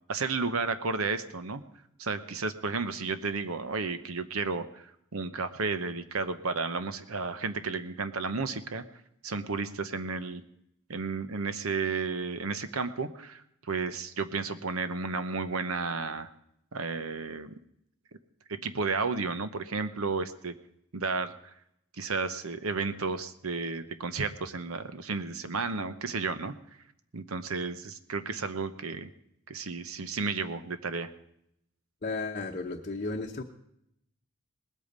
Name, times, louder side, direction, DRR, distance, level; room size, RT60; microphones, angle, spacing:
voice 1, 0.1-1.6 2.0-4.9 5.1-8.8 9.2-10.4 10.9-16.3 16.7-17.5 18.6-20.5 20.9-21.5 22.0-26.5 27.1-29.1 29.5-31.1, right 4 dB, 70° right, 11 dB, 0.9 m, -32 dB
voice 2, 32.0-33.4, left 3 dB, 40° left, 1 dB, 0.9 m, -34 dB
19.5 x 8.4 x 5.3 m, 0.76 s
head